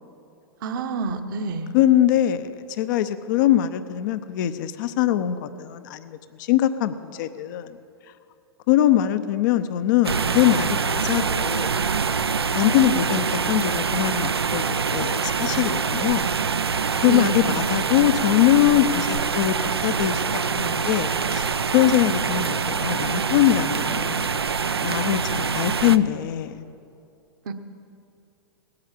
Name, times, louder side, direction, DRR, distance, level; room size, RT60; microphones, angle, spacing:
voice 1, 0.6-1.8 17.1-17.6 27.5-27.6, right 3 dB, 55° right, 8 dB, 1.1 m, -28 dB
voice 2, 1.7-2.5 2.8-7.7 8.7-11.7 12.5-14.6 14.9-16.3 17.0-21.5 21.7-24.3 24.8-26.6, left 12 dB, 50° left, 11 dB, 0.7 m, -22 dB
sound 1, 10.0-26.0, right 5 dB, 80° right, 0.6 m, -25 dB
19.0 x 8.9 x 7.4 m, 2.6 s
figure-of-eight pair, 100°, 13 cm